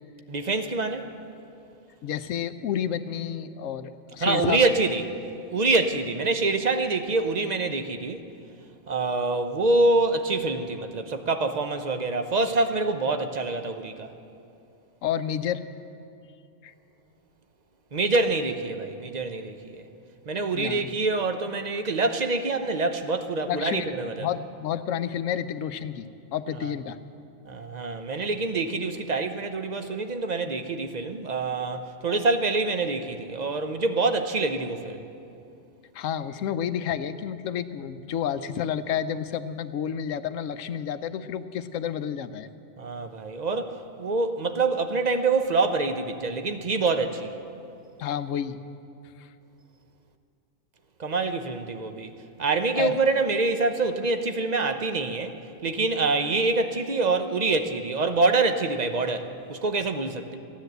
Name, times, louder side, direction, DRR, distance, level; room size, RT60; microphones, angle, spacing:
voice 1, 0.3-1.1 4.2-5.0 5.5-8.2 8.9-14.1 17.9-19.8 20.3-24.3 26.6-26.7 27.4-35.0 42.8-47.3 51.0-52.1 52.4-60.4, right 3 dB, 40° right, 8 dB, 0.7 m, -26 dB
voice 2, 2.0-4.6 15.0-15.6 16.6-16.7 20.5-20.9 23.5-23.9 24.2-27.0 35.9-42.5 48.0-48.6 49.2-49.3 52.8-52.9, left 9 dB, 90° left, 12 dB, 1.0 m, -30 dB
14.5 x 10.5 x 7.9 m, 2.6 s
omnidirectional pair, 1.3 m